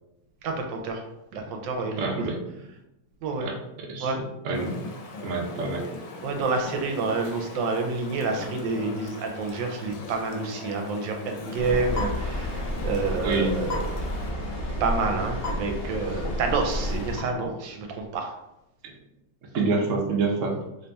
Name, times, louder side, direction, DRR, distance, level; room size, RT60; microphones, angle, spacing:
voice 1, 0.4-1.1 1.3-2.3 3.2-3.5 4.0-4.2 6.2-13.9 14.8-18.3, right 3 dB, 85° right, 3 dB, 1.3 m, -28 dB
voice 2, 2.0-2.3 3.4-3.5 3.9-4.1 4.4-4.7 5.2-5.9 13.2-13.5 19.5-20.5, right 4 dB, 60° right, -1 dB, 0.8 m, -26 dB
Chatter / Stream, 4.5-14.3, left 3 dB, 80° left, 1.4 m, -40 dB
sound 1, 11.6-17.2, left 1 dB, 60° left, 0.6 m, -30 dB
4.0 x 3.3 x 2.3 m, 0.89 s
omnidirectional pair, 2.0 m